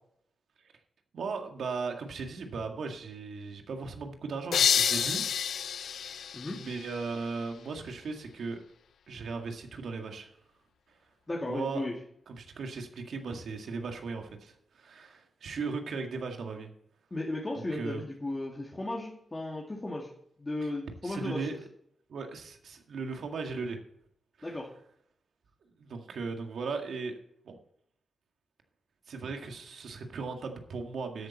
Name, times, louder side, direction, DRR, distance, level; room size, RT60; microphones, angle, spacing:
voice 1, 1.1-5.2 5.5-8.6 9.1-10.3 10.9-11.0 11.4-11.8 12.3-16.7 17.7-18.0 21.0-21.6 22.1-23.8 24.4-24.6 25.8-27.2 27.4-27.6 29.1-31.3, right 4 dB, 80° right, 4 dB, 1.9 m, -37 dB
sound 1, 4.5-7.3, left 8 dB, 85° left, 0.3 m, -29 dB
voice 2, 11.3-11.9 17.1-20.1 20.4-21.5 24.4-24.7, left 2 dB, 25° left, -2 dB, 2.2 m, -35 dB
13.0 x 8.7 x 4.2 m, 0.69 s
cardioid pair, 70°, 0 cm